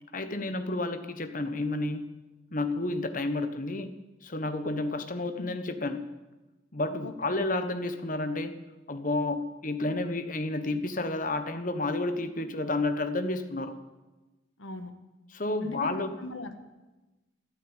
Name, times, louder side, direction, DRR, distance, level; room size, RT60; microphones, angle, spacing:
voice 1, 0.1-2.1 2.5-3.9 4.2-6.1 6.7-8.6 8.9-13.7 15.3-16.2, left 2 dB, 40° left, 9 dB, 1.2 m, -31 dB
voice 2, 7.0-7.5 14.6-14.9 15.6-16.6, left 1 dB, 85° left, 8 dB, 1.7 m, -39 dB
13.5 x 11.5 x 9.1 m, 1.1 s
head